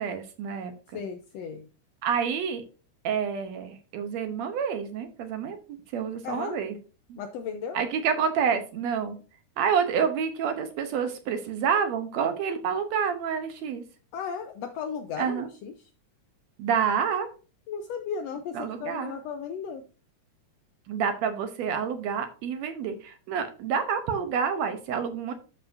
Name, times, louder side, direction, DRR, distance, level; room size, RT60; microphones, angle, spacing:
voice 1, 0.0-1.0 2.0-2.6 3.0-5.6 5.9-6.8 7.1-7.2 7.7-9.2 9.6-13.8 15.2-15.5 16.6-17.3 18.5-19.2 20.9-25.3, right 7 dB, 75° right, 8 dB, 1.8 m, -28 dB
voice 2, 0.9-1.7 6.2-6.6 7.2-7.8 14.1-15.7 17.7-19.8, left 6 dB, 80° left, 7 dB, 1.5 m, -35 dB
12.5 x 4.7 x 2.5 m, 0.35 s
omnidirectional pair, 3.5 m